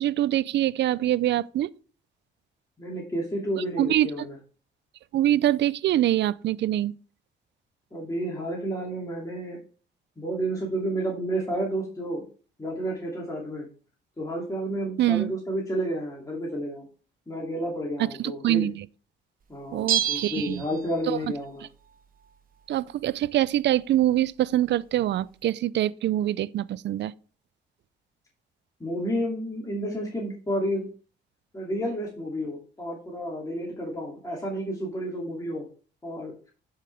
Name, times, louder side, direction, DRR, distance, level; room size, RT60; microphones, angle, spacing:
voice 1, 0.0-1.7 3.6-4.1 5.1-6.9 15.0-15.3 18.0-18.9 19.7-20.6 21.1-21.2 22.7-27.1, right 13 dB, 65° right, 0.5 m, -24 dB
voice 2, 2.8-4.4 7.9-9.6 10.2-12.2 12.6-13.7 14.2-16.8 17.3-18.7 19.5-21.7 28.8-30.9 31.5-35.7 36.0-36.3, right 1 dB, 15° left, 2.6 m, -31 dB
Bell, 19.9-21.3 21.6-21.7, right 10 dB, 45° right, 1.0 m, -28 dB
11.0 x 5.7 x 3.4 m
cardioid pair, 90°, 20 cm